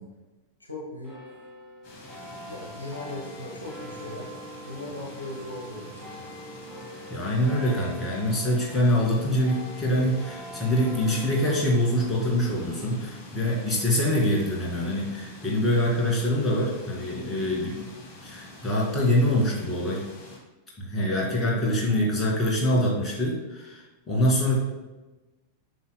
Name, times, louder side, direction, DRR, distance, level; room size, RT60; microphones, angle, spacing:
voice 1, 0.6-1.1 2.5-4.3 4.7-6.2, left 2 dB, 85° left, -2 dB, 1.2 m, -38 dB
sound 1, 1.0-17.8, right 1 dB, 10° right, 2.3 m, -45 dB
sound 2, 1.8-20.4, left 1 dB, 35° left, 2.3 m, -47 dB
voice 2, 7.1-17.9 18.2-20.0 20.8-24.6, left 1 dB, 20° left, -3 dB, 2.2 m, -25 dB
9.2 x 5.9 x 2.2 m, 1.1 s
figure-of-eight pair, 90°, 0 cm